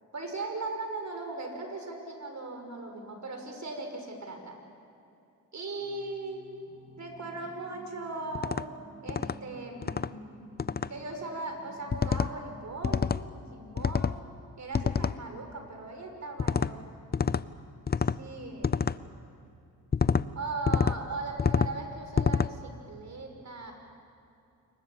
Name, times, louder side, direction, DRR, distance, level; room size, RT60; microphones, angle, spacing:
voice 1, 0.1-4.6 5.5-6.4 7.0-8.7 9.0-10.5 10.9-14.3 14.6-16.8 18.0-18.9 20.3-23.7, right 3 dB, 45° right, 4 dB, 6.0 m, -38 dB
Singing, 5.7-14.7, right 2 dB, 20° right, 2.4 m, -54 dB
sound 1, 8.4-8.6 9.1-9.4 9.8-10.1 10.6-10.9 11.9-12.3 12.8-13.2 13.8-14.2 14.7-15.2 16.4-16.7 17.1-17.4 17.9-18.2 18.6-19.0 19.9-20.3 20.7-21.0 21.4-21.7 22.2-22.5, left 6 dB, 25° left, 0.6 m, -27 dB
27.0 x 23.0 x 7.4 m, 2.6 s
supercardioid pair, 60°, 38 cm